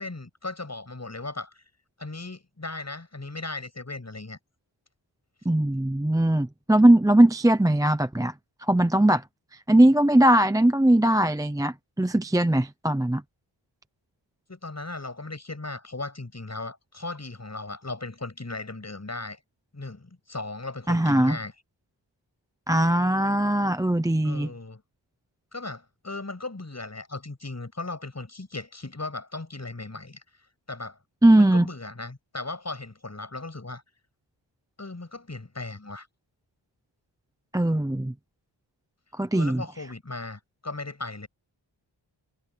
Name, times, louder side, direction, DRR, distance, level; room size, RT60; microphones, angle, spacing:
voice 1, 0.0-1.7 2.0-4.4 14.5-19.4 19.7-21.5 24.2-24.8 25.5-30.2 30.7-31.0 31.4-33.8 34.8-36.1 39.3-41.3, left 2 dB, 35° left, 7.3 m, -37 dB
voice 2, 5.5-8.3 8.7-9.2 9.7-13.2 20.9-21.4 22.7-24.5 31.2-31.7 37.5-38.1 39.2-39.6, right 1 dB, 5° right, 0.6 m, -20 dB
wide cardioid pair, 105°, 48 cm